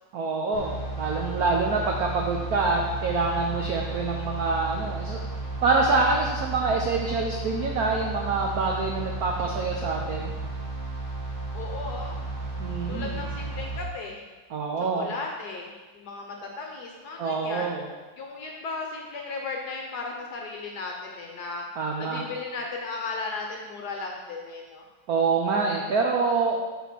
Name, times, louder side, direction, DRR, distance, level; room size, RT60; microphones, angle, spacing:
voice 1, 0.1-5.2 5.6-10.3 12.6-13.2 14.5-15.1 17.2-17.9 21.8-22.3 25.1-26.6, right 4 dB, 85° right, 0 dB, 0.8 m, -26 dB
sound 1, 0.5-13.8, right 3 dB, 45° right, 1.4 m, -33 dB
voice 2, 11.5-12.2 12.9-14.2 14.8-17.7 18.2-21.6 22.0-24.8, left 3 dB, 65° left, 0 dB, 1.1 m, -36 dB
5.6 x 4.1 x 6.0 m, 1.3 s
omnidirectional pair, 2.4 m